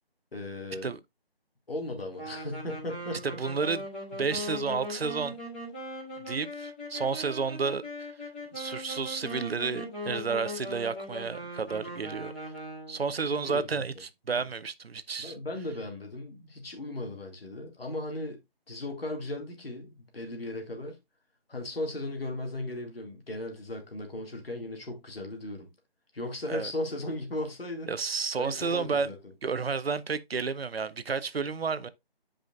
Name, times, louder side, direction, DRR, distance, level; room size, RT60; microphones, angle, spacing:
voice 1, 0.3-0.9 1.7-3.3 13.2-13.8 15.2-18.4 18.7-21.0 21.5-25.7 26.1-29.2, left 1 dB, 70° left, 2.1 m, -37 dB
sound 1, 2.1-13.1, left 1 dB, 10° left, 1.3 m, -40 dB
voice 2, 3.2-3.9 4.1-5.4 6.3-7.8 8.5-12.3 12.9-15.3 26.5-26.7 27.9-29.1 29.4-31.9, right 5 dB, 75° right, 0.7 m, -31 dB
9.0 x 5.0 x 2.4 m
figure-of-eight pair, 165°, 30 cm